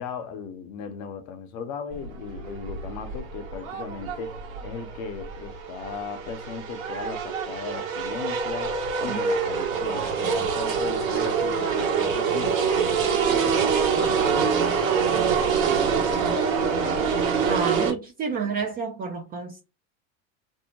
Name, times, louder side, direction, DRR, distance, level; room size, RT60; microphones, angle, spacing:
voice 1, 0.0-14.7 15.0-17.1 17.5-17.9 18.3-18.4, left 5 dB, 50° left, 0.7 m, -38 dB
sound 1, 1.9-17.9, right 6 dB, 70° right, 1.1 m, -25 dB
voice 2, 17.5-19.6, right 5 dB, 25° right, 0.3 m, -30 dB
2.7 x 2.0 x 2.9 m
hypercardioid pair, 110°, 42 cm